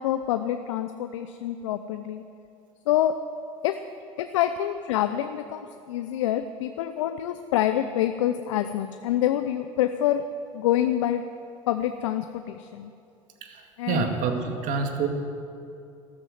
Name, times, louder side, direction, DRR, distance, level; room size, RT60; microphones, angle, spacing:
voice 1, 0.0-2.2 2.9-3.2 3.6-3.8 4.2-10.2 10.5-11.2 11.7-12.9 13.8-14.1, left 12 dB, 75° left, 9 dB, 0.6 m, -26 dB
voice 2, 13.4-15.1, right 5 dB, 55° right, 4 dB, 2.1 m, -27 dB
13.5 x 13.0 x 7.8 m, 2.6 s
hypercardioid pair, 65°, 16 cm